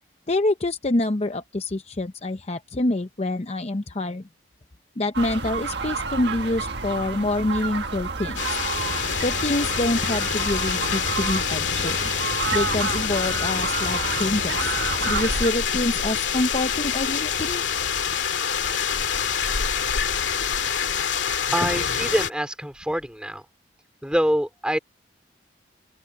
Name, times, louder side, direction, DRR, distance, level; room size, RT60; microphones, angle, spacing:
voice 1, 0.3-4.2 5.0-8.4 9.2-12.0 12.5-14.8 15.1-17.6 21.6-21.7, left 2 dB, 35° left, 0.7 m, -26 dB
sound 1, 5.1-15.5, right 4 dB, 65° right, 1.6 m, -30 dB
sound 2, 8.4-22.3, left 7 dB, 80° left, 2.0 m, -26 dB
sound 3, 8.8-15.3, left 1 dB, 60° left, 5.3 m, -37 dB
voice 2, 21.5-23.4 24.0-24.8, equal, 5° right, 3.8 m, -25 dB
open air
head